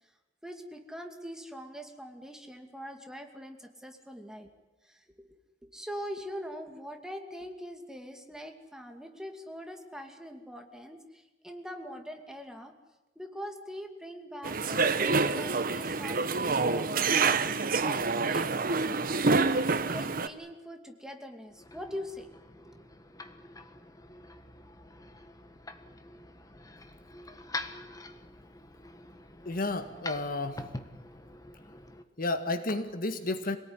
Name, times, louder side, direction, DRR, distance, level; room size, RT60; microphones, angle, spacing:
voice 1, 0.4-4.5 4.8-5.4 5.6-12.7 13.2-19.1 19.9-22.8, equal, 5° right, 4 dB, 2.4 m, -43 dB
sound 1, 14.4-20.3, right 4 dB, 50° right, 1.1 m, -27 dB
sound 2, 21.5-32.0, left 2 dB, 20° left, 1.5 m, -45 dB
voice 2, 29.5-30.6 32.2-33.6, left 2 dB, 50° left, 8 dB, 1.7 m, -31 dB
26.0 x 18.5 x 9.8 m, 1.0 s
head